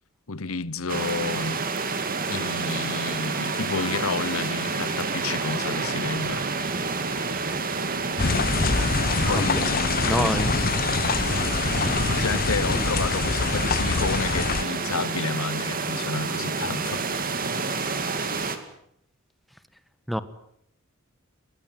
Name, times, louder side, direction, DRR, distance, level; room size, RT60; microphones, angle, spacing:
voice 1, 0.3-1.6 2.3-6.5 9.3-10.3 11.3-17.0, left 4 dB, 80° left, 1.1 m, -31 dB
sound 1, 0.9-18.6, right 4 dB, 45° right, 2.5 m, -29 dB
sound 2, 8.2-14.6, left 4 dB, 45° left, 0.9 m, -25 dB
voice 2, 9.3-9.6 10.0-10.6 12.7-12.8 20.1-20.2, equal, ahead, 1.4 m, -27 dB
21.5 x 21.0 x 9.4 m
head